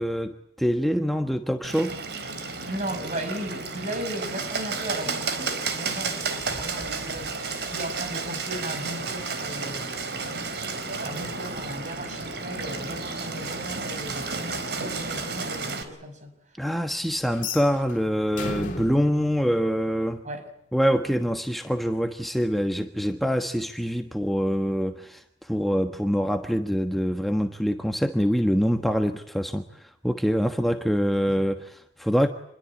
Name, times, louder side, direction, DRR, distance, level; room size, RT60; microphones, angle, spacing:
voice 1, 0.0-2.0 16.6-20.2 20.7-32.3, equal, ahead, 5 dB, 1.3 m, -25 dB
Bird, 1.6-15.8, right 4 dB, 65° right, 4.0 m, -32 dB
voice 2, 2.7-10.3 10.7-10.8 11.0-16.3 20.2-20.5, right 1 dB, 40° right, 8 dB, 5.9 m, -36 dB
sound 1, 17.3-20.4, left 3 dB, 50° left, 3.5 m, -36 dB
27.5 x 22.0 x 8.7 m, 0.74 s
head